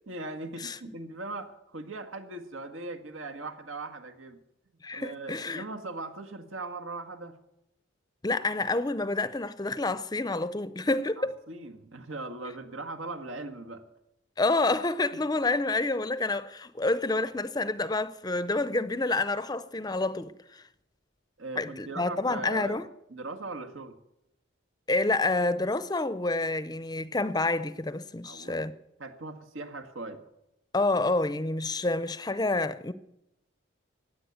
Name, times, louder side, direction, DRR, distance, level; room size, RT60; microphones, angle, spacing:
voice 1, 0.1-4.4 4.9-7.4 11.2-13.9 21.4-22.8 23.1-24.0 28.2-28.6 29.0-30.2, right 2 dB, 85° right, 1.8 m, -39 dB
voice 2, 4.8-5.6 8.2-11.3 14.4-20.6 21.6-22.9 24.9-28.7 30.7-32.9, left 2 dB, 20° left, 0.6 m, -28 dB
16.0 x 10.0 x 8.1 m
head